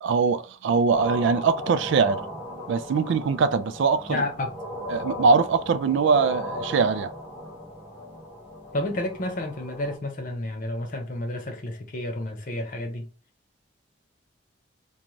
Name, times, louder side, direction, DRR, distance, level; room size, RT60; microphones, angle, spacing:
voice 1, 0.0-2.2 2.7-4.2 4.9-7.1, right 5 dB, 65° right, 0.3 m, -22 dB
sound 1, 0.9-10.0, left 1 dB, 15° left, 1.1 m, -37 dB
voice 2, 4.1-4.5 8.7-13.1, left 1 dB, 45° left, 0.7 m, -30 dB
2.6 x 2.3 x 2.9 m
head